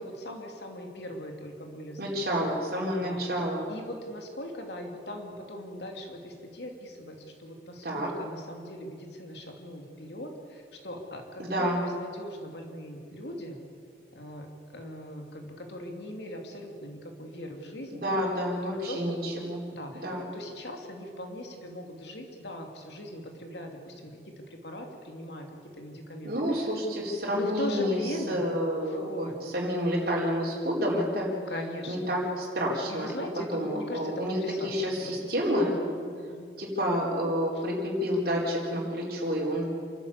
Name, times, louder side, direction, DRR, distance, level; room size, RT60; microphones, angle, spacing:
voice 1, 0.0-2.5 3.0-3.2 3.7-13.6 14.1-18.2 18.6-19.3 19.7-25.5 25.8-26.7 27.3-28.5 28.8-29.4 29.9-30.2 31.5-32.1 32.9-35.2 35.9-36.5 37.5-37.6, left 1 dB, 70° left, 3 dB, 2.7 m, -40 dB
voice 2, 2.0-3.7 7.8-8.1 11.4-11.8 17.9-19.6 19.9-20.2 26.2-28.0 28.3-31.3 31.9-33.1 33.5-34.4 34.6-35.7 36.6-39.7, equal, 55° right, -4 dB, 4.3 m, -29 dB
27.0 x 12.5 x 8.3 m, 2.3 s
head